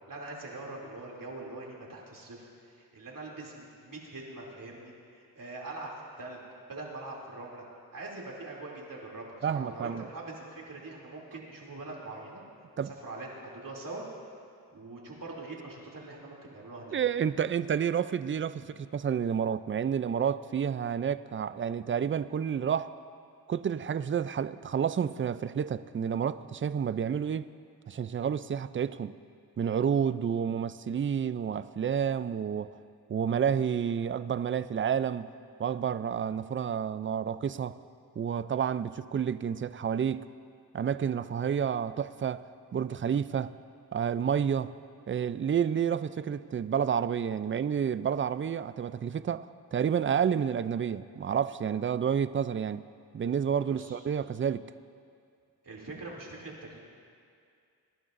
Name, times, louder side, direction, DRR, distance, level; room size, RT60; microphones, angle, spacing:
voice 1, 0.1-6.4 6.7-7.6 7.9-12.4 12.8-14.0 14.7-17.0 18.6-18.7 53.7-54.0 55.6-56.8, right 2 dB, 55° right, -3 dB, 2.8 m, -43 dB
voice 2, 9.4-10.0 12.8-12.9 16.9-22.9 23.5-27.5 27.9-29.1 29.6-32.8 33.1-35.3 35.6-37.8 38.2-40.3 40.7-42.4 42.7-43.5 43.9-44.7 45.1-52.8 53.1-54.6, right 8 dB, 35° right, 15 dB, 0.4 m, -30 dB
22.5 x 11.0 x 2.6 m, 2.3 s
cardioid pair, 60°, 39 cm